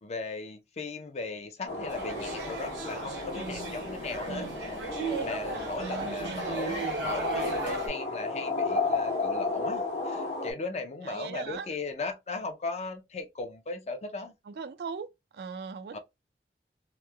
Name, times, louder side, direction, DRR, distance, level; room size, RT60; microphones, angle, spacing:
voice 1, 0.0-4.5 5.2-14.3 15.9-16.0, left 3 dB, 35° left, 0.4 m, -37 dB
sound 1, 1.7-10.5, left 3 dB, 75° left, 1.0 m, -33 dB
sound 2, 1.9-7.9, right 2 dB, 90° right, 0.8 m, -35 dB
voice 2, 3.3-3.7 4.3-4.6 5.8-6.5 11.0-11.7 14.5-15.1 15.3-16.0, right 5 dB, 65° right, 0.3 m, -39 dB
2.9 x 2.0 x 2.2 m
head